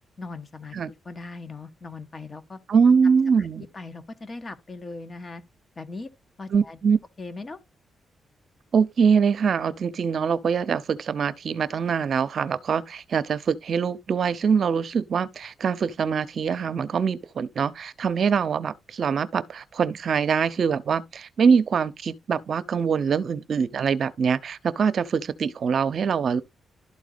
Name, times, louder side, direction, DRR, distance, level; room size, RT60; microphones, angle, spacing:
voice 1, 0.2-0.8 1.0-2.6 3.4-3.5 3.7-5.4 5.8-6.1 6.4-6.8 7.2-7.6, left 3 dB, 35° left, 1.4 m, -39 dB
voice 2, 2.7-3.7 6.5-7.0 8.7-26.4, right 6 dB, 60° right, 0.8 m, -23 dB
12.0 x 4.1 x 4.0 m
cardioid pair, 95°, 0 cm